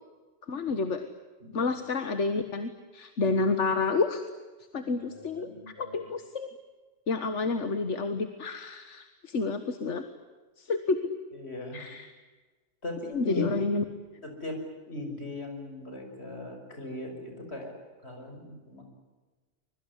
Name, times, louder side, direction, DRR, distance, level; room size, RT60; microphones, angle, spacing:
voice 1, 0.5-1.1 1.5-4.2 4.7-5.5 5.8-6.5 7.1-10.0 10.6-11.1 11.7-12.1 13.1-13.8, left 3 dB, 85° left, 9 dB, 1.8 m, -29 dB
voice 2, 1.4-1.7 3.2-3.3 4.8-6.1 11.3-11.9 12.8-13.6 14.2-14.6 14.9-17.7 18.0-18.8, left 2 dB, 65° left, 4 dB, 6.3 m, -39 dB
25.0 x 22.5 x 9.8 m, 1.3 s
omnidirectional pair, 1.2 m